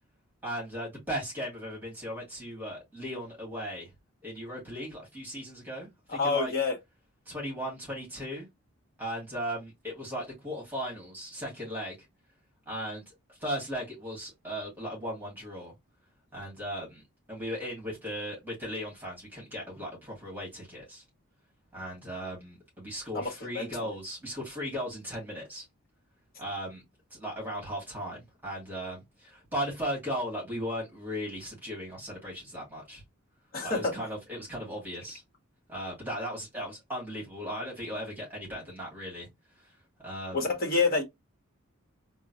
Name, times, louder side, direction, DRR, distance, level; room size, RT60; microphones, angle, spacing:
voice 1, 0.4-3.9 4.2-6.5 7.3-8.5 9.0-11.9 12.7-13.1 13.4-15.7 16.3-17.0 17.3-21.0 21.7-25.6 26.4-26.8 27.1-33.0 33.6-35.2 35.7-39.3 40.0-40.5, equal, 10° right, 1.9 m, -37 dB
voice 2, 6.1-6.8 23.1-23.9 33.5-34.0 40.3-41.0, left 4 dB, 40° left, 1.3 m, -28 dB
3.7 x 2.2 x 2.8 m
head